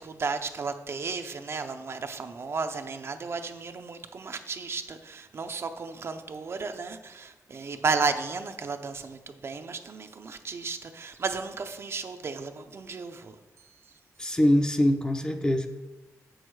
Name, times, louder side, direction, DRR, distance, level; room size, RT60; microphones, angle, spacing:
voice 1, 0.0-13.3, right 4 dB, 45° right, 7 dB, 0.5 m, -33 dB
voice 2, 14.2-15.7, left 1 dB, 10° left, 6 dB, 0.5 m, -23 dB
8.3 x 6.3 x 4.7 m, 1.1 s
wide cardioid pair, 165°, 6 cm